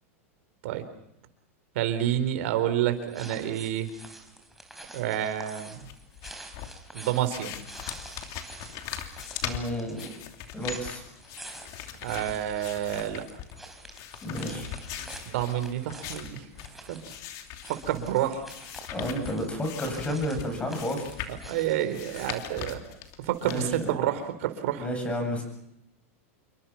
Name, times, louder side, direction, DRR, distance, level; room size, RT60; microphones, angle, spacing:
voice 1, 1.7-3.9 4.9-5.9 6.9-7.5 12.0-13.2 15.3-16.4 16.9-17.0 17.7-18.4 21.5-22.8 23.2-24.8, right 11 dB, 65° right, 10 dB, 4.2 m, -29 dB
sound 1, 2.9-22.6, right 2 dB, ahead, 4.3 m, -48 dB
sound 2, 5.8-23.9, left 10 dB, 45° left, 2.9 m, -41 dB
voice 2, 9.4-10.1 10.5-11.0 14.2-14.7 18.9-21.1 23.4-23.9 24.8-25.4, equal, 15° left, 5 dB, 8.0 m, -31 dB
28.0 x 23.5 x 6.0 m, 0.79 s
hypercardioid pair, 125°, 8 cm